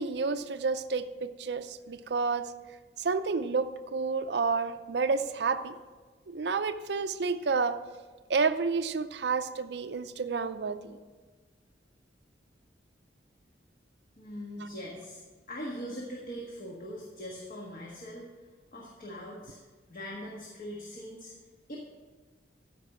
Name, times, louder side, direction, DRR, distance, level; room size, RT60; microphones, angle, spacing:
voice 1, 0.0-2.5 3.0-5.7 6.3-7.8 8.3-11.0 14.6-14.7, right 4 dB, 70° right, 10 dB, 0.5 m, -30 dB
voice 2, 14.2-15.2 15.5-18.2 18.7-19.6 19.9-21.3 21.7-21.8, equal, 50° left, -3 dB, 1.6 m, -41 dB
14.0 x 5.3 x 6.0 m, 1.4 s
head